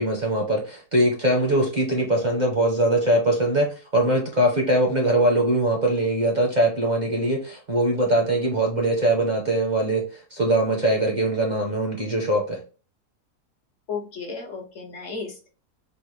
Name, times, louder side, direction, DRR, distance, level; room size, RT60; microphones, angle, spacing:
voice 1, 0.0-10.0 10.3-12.6, right 1 dB, 40° right, 0.6 m, -22 dB
voice 2, 13.9-15.5, left 5 dB, 55° left, 1.1 m, -34 dB
4.1 x 2.2 x 3.2 m
omnidirectional pair, 1.7 m